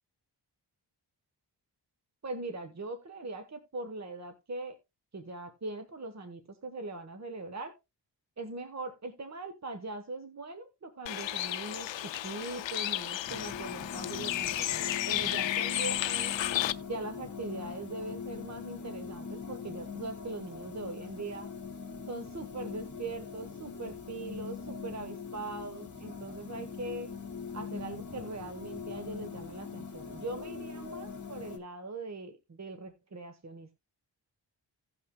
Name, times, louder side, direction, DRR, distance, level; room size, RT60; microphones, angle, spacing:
voice 1, 2.2-4.8 5.1-7.7 8.4-16.4 16.9-21.5 22.1-27.1 27.5-33.8, right 2 dB, 35° right, 7 dB, 1.3 m, -41 dB
Bird, 11.1-16.7, left 13 dB, 80° left, 0.6 m, -33 dB
sound 1, 13.3-31.6, left 5 dB, 40° left, 2.2 m, -42 dB
17.0 x 5.7 x 2.3 m, 0.23 s
wide cardioid pair, 85°, 44 cm